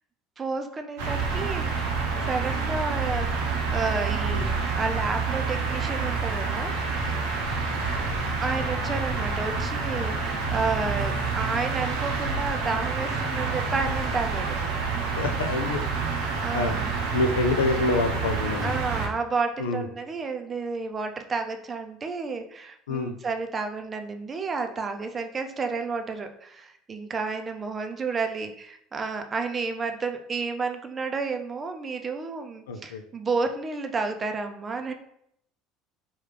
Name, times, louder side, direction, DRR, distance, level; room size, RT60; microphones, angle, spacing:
voice 1, 0.4-7.2 8.4-14.6 16.4-16.9 18.6-34.9, right 4 dB, 30° right, 6 dB, 0.5 m, -31 dB
sound 1, 1.0-19.1, right 4 dB, 80° right, 0.7 m, -28 dB
voice 2, 15.2-16.8 17.1-18.8 19.6-19.9 22.9-23.1 32.7-33.0, left 3 dB, 85° left, 8 dB, 0.3 m, -27 dB
3.4 x 2.3 x 3.2 m, 0.72 s
hypercardioid pair, 75°, 0 cm